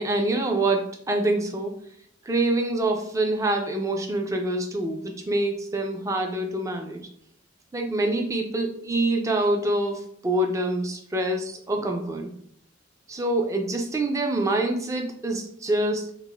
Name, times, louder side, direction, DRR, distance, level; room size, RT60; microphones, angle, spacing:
voice 1, 0.0-1.7 2.3-7.0 7.7-12.3 13.1-16.1, right 2 dB, 15° right, 3 dB, 0.3 m, -26 dB
4.0 x 2.1 x 2.3 m, 0.65 s
head